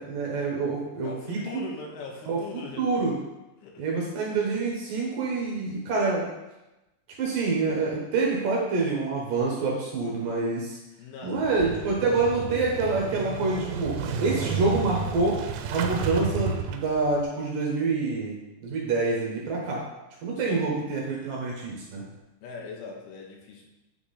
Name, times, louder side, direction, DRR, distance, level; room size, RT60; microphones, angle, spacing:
voice 1, 0.0-1.6 2.3-3.1 3.8-6.3 7.2-10.8 11.2-15.4 15.7-18.4 18.6-19.8 20.2-22.0, right 3 dB, 65° right, -3 dB, 2.4 m, -27 dB
voice 2, 1.1-2.9 3.6-3.8 11.0-12.3 20.4-20.7 22.4-23.7, left 4 dB, 85° left, 0 dB, 3.8 m, -41 dB
Motorcycle / Engine starting, 11.4-17.2, right 5 dB, 80° right, 2.8 m, -32 dB
9.5 x 5.8 x 4.3 m, 0.99 s
omnidirectional pair, 5.5 m